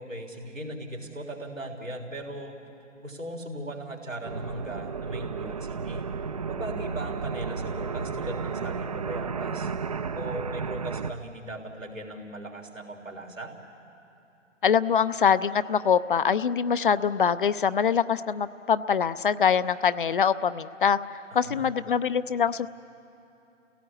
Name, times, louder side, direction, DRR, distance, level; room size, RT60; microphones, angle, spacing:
voice 1, 0.0-2.6 3.0-6.0 6.4-9.7 10.1-13.5 21.3-21.7, right 1 dB, 90° right, 0 dB, 3.8 m, -38 dB
sound 1, 4.2-11.1, right 5 dB, 30° right, 0.5 m, -33 dB
voice 2, 14.6-22.7, left 7 dB, 45° left, 15 dB, 0.5 m, -24 dB
30.0 x 17.5 x 8.6 m, 2.9 s
figure-of-eight pair, 135°, 38 cm